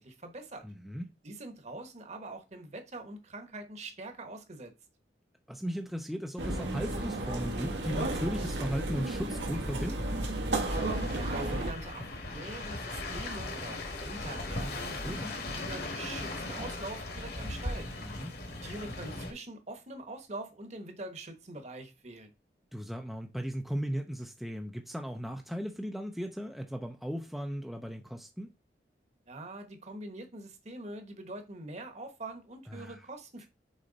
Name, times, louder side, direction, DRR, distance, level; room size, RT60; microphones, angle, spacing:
voice 1, 0.0-0.6 1.2-4.7 11.1-17.9 18.5-22.3 29.3-33.5, right 2 dB, 40° right, 1.2 m, -44 dB
voice 2, 0.6-1.1 5.5-10.3 14.5-15.3 18.0-18.3 22.7-28.5 32.7-33.0, equal, ahead, 0.5 m, -37 dB
sound 1, 6.4-11.7, right 1 dB, 85° right, 1.6 m, -33 dB
sound 2, 10.7-19.3, left 2 dB, 60° left, 1.9 m, -38 dB
6.6 x 4.2 x 4.0 m
head